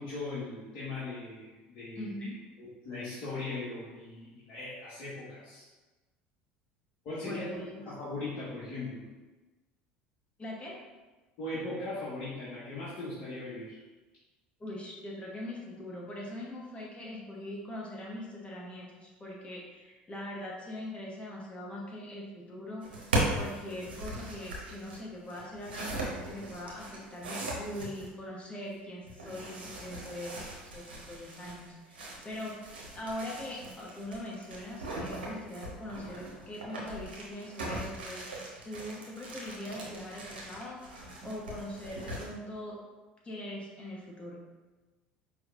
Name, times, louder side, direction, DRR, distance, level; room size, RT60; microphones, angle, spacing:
voice 1, 0.0-2.1 2.6-5.7 7.0-7.4 7.8-9.0 11.4-13.8, left 2 dB, 60° left, -11 dB, 1.4 m, -39 dB
voice 2, 2.0-2.4 7.2-7.9 10.4-10.7 14.6-32.7 32.9-38.2 38.6-42.8 43.2-44.4, left 1 dB, 25° left, -3 dB, 1.1 m, -42 dB
sound 1, 22.8-28.1 29.1-42.3, right 1 dB, 90° right, 0.8 m, -39 dB
4.9 x 3.1 x 2.5 m, 1.2 s
hypercardioid pair, 75°, 5 cm